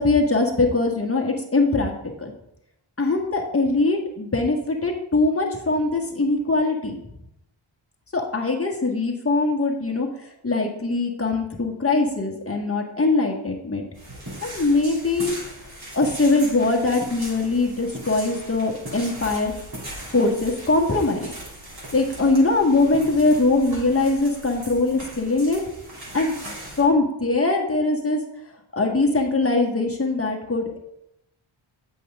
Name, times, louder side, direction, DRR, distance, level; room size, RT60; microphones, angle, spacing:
voice 1, 0.0-1.9 2.2-2.3 3.0-6.9 8.1-10.1 10.4-13.8 14.4-15.3 15.9-19.5 20.1-21.3 21.9-25.6 26.1-28.2 28.7-30.8, left 3 dB, 25° left, 1 dB, 1.6 m, -22 dB
sound 1, 13.9-26.8, right 1 dB, 50° right, 3.2 m, -39 dB
8.3 x 6.5 x 3.6 m, 0.81 s
wide cardioid pair, 80°, 49 cm